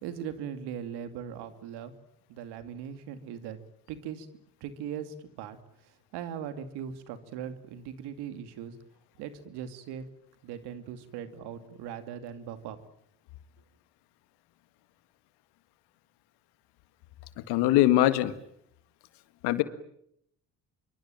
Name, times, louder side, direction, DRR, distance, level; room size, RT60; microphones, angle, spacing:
voice 1, 0.0-1.9 2.3-3.6 3.9-4.3 4.6-5.6 6.1-8.7 9.2-10.1 10.4-12.8, right 8 dB, 85° right, 10 dB, 2.5 m, -39 dB
voice 2, 17.5-18.3 19.4-19.6, left 14 dB, 90° left, 12 dB, 1.8 m, -22 dB
26.0 x 24.5 x 8.9 m, 0.74 s
supercardioid pair, 65°, 39 cm